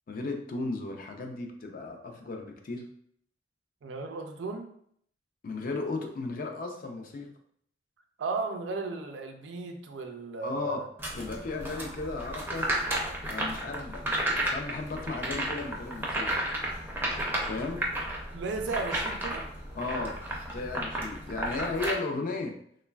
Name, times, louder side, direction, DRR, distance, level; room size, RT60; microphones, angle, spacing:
voice 1, 0.1-2.9 5.4-7.3 10.4-10.8 11.1-12.7 13.3-16.3 17.4-17.9 19.7-20.2 20.5-22.6, left 3 dB, 50° left, 3 dB, 0.4 m, -35 dB
voice 2, 3.8-4.7 8.2-10.9 18.3-19.4, right 4 dB, 75° right, 5 dB, 0.4 m, -35 dB
sound 1, 11.0-21.9, right 1 dB, 10° right, 0.4 m, -33 dB
3.1 x 2.1 x 2.2 m, 0.66 s
head